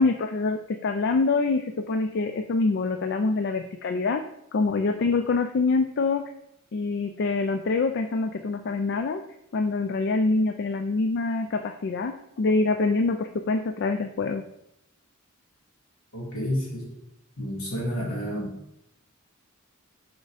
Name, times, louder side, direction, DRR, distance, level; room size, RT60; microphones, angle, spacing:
voice 1, 0.0-4.2 4.5-6.2 6.7-9.2 9.5-14.4, left 3 dB, 50° left, 7 dB, 0.4 m, -25 dB
voice 2, 16.1-16.9 17.4-18.5, equal, 75° left, -3 dB, 2.6 m, -30 dB
6.6 x 4.5 x 4.9 m, 0.80 s
head